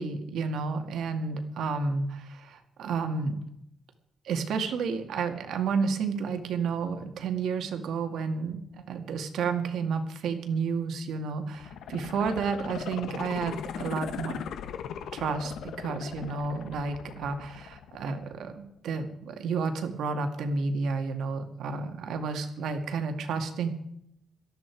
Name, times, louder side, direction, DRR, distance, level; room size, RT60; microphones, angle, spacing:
voice 1, 0.0-3.4 4.2-14.4 15.1-23.7, right 5 dB, 70° right, 6 dB, 2.1 m, -31 dB
sound 1, 11.5-18.5 18.9-19.0, left 8 dB, 80° left, 1.2 m, -39 dB
18.5 x 13.5 x 4.7 m, 0.76 s
cardioid pair, 165°, 0 cm